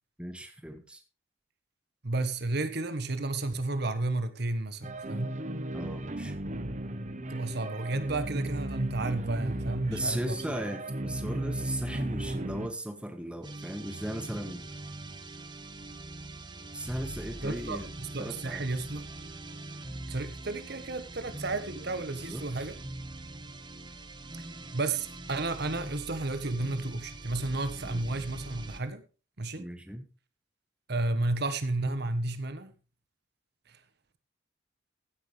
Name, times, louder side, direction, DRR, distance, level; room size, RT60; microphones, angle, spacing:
voice 1, 0.2-1.0 5.7-6.3 9.9-14.6 16.7-17.9 18.2-18.6 22.1-22.4 27.8-28.0 29.5-30.0, right 1 dB, 5° right, 1.5 m, -36 dB
voice 2, 2.0-5.4 7.3-10.4 17.4-19.1 20.1-22.7 24.7-29.0 29.4-29.7 30.9-32.7 33.7-33.8, right 2 dB, 55° right, 1.3 m, -32 dB
sound 1, 4.8-12.7, right 1 dB, 40° right, 1.0 m, -35 dB
sound 2, 13.4-28.9, right 2 dB, 25° right, 1.3 m, -43 dB
16.0 x 9.6 x 3.4 m
head